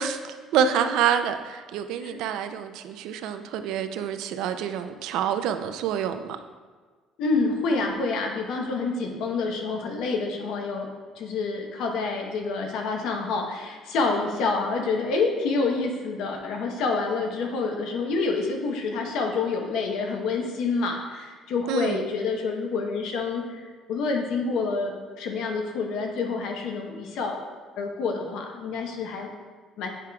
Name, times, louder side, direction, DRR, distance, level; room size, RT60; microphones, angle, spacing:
voice 1, 0.0-6.2 21.7-22.0, right 8 dB, 80° right, 9 dB, 0.4 m, -27 dB
voice 2, 7.2-10.9 11.2-27.4 27.8-29.3 29.8-29.9, left 4 dB, 75° left, 2 dB, 0.9 m, -28 dB
9.0 x 4.8 x 2.3 m, 1.4 s
cardioid pair, 155°, 0 cm